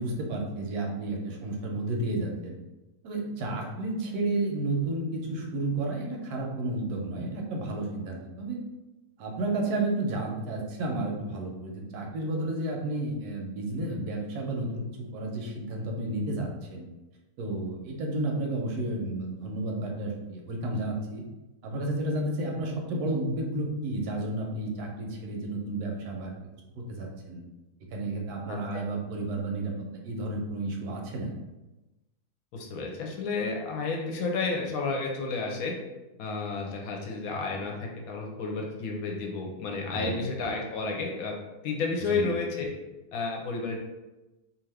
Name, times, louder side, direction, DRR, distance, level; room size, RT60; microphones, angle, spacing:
voice 1, 0.0-2.6 3.0-8.6 9.2-16.9 17.4-21.2 21.6-26.3 26.8-27.4 27.9-29.7 30.0-31.3 39.9-40.2 42.1-42.3, right 2 dB, 80° right, 0 dB, 1.1 m, -32 dB
voice 2, 32.5-35.7 36.2-41.3 41.6-42.7 43.1-43.8, left 4 dB, 70° left, 0 dB, 1.0 m, -31 dB
2.7 x 2.4 x 3.2 m, 1.1 s
omnidirectional pair, 1.6 m